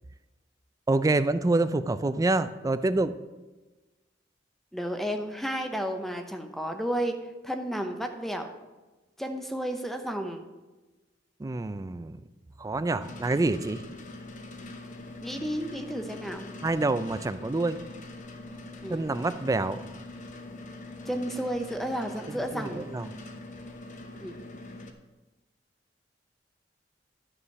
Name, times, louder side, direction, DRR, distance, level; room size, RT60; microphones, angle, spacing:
voice 1, 0.9-3.1 11.4-12.2 12.6-13.8 16.6-17.8 18.9-19.8 22.5-23.1, right 2 dB, 20° right, 12 dB, 0.4 m, -27 dB
voice 2, 4.7-7.1 7.4-8.5 9.2-10.4 15.2-16.5 18.8-19.0 21.0-22.8 24.2-24.4, equal, ahead, 5 dB, 0.8 m, -32 dB
sound 1, 13.0-24.9, left 2 dB, 45° left, 0.9 m, -43 dB
11.0 x 5.0 x 5.7 m, 1.2 s
head